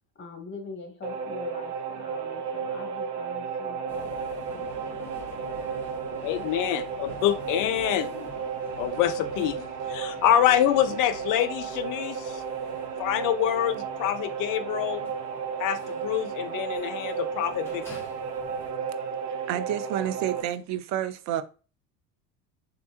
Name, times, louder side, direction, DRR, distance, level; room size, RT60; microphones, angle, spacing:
voice 1, 0.2-5.2, left 4 dB, 25° left, 1.3 m, -43 dB
sound 1, 1.0-20.4, right 6 dB, 85° right, 0.7 m, -33 dB
sound 2, 3.9-18.7, left 1 dB, 5° left, 1.7 m, -49 dB
voice 2, 6.2-8.3 8.8-12.4 13.0-15.1 15.6-17.8, left 11 dB, 45° left, 0.5 m, -26 dB
voice 3, 19.3-21.4, right 11 dB, 40° right, 0.4 m, -30 dB
3.4 x 2.8 x 2.8 m
hypercardioid pair, 70°, 48 cm